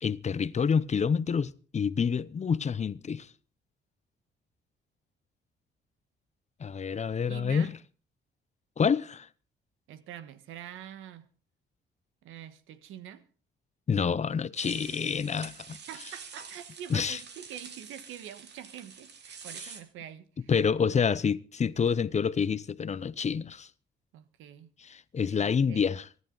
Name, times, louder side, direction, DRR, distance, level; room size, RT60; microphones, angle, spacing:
voice 1, 0.0-3.3 6.6-7.7 8.8-9.3 13.9-15.8 16.9-17.2 20.5-23.7 24.8-26.1, left 6 dB, 35° left, 0.7 m, -28 dB
voice 2, 7.3-7.7 9.9-11.3 12.2-13.2 15.9-20.5 20.8-21.0 24.1-24.7 25.3-25.9, right 10 dB, 90° right, 1.4 m, -45 dB
sound 1, 14.6-19.8, right 6 dB, 60° right, 2.8 m, -46 dB
24.5 x 11.0 x 3.9 m
cardioid pair, 90°, 20 cm